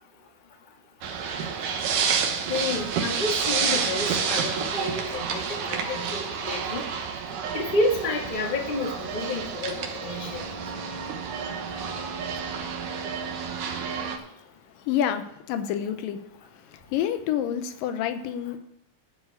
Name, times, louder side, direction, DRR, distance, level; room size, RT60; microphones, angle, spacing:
sound 1, 1.0-14.2, right 6 dB, 75° right, 2.7 m, -29 dB
voice 1, 2.5-6.8 7.5-10.4, left 2 dB, 30° left, 0.9 m, -29 dB
voice 2, 14.9-16.2 16.9-18.6, left 10 dB, 85° left, 2.5 m, -28 dB
11.0 x 4.8 x 8.2 m
omnidirectional pair, 3.9 m